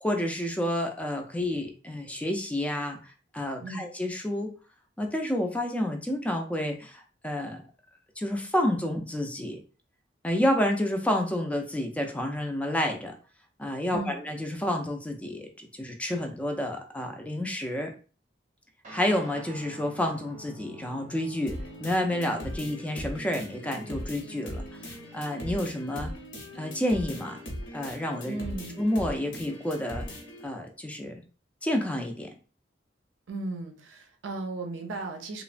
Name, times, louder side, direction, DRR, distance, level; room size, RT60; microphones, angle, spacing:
voice 1, 0.0-4.5 5.0-7.6 8.2-9.6 10.2-13.1 13.6-17.9 18.9-26.1 26.6-27.4 27.7-28.4 28.8-30.1 30.4-31.1 31.6-32.3, left 1 dB, 5° left, 3 dB, 0.3 m, -29 dB
voice 2, 13.9-14.2 28.3-28.8 33.3-35.4, right 2 dB, 85° right, 4 dB, 0.5 m, -36 dB
Guitar, 18.8-27.7, left 2 dB, 40° right, 0.6 m, -50 dB
sound 1, 21.5-30.5, equal, 80° left, 0.8 m, -39 dB
3.0 x 2.0 x 2.4 m, 0.37 s
head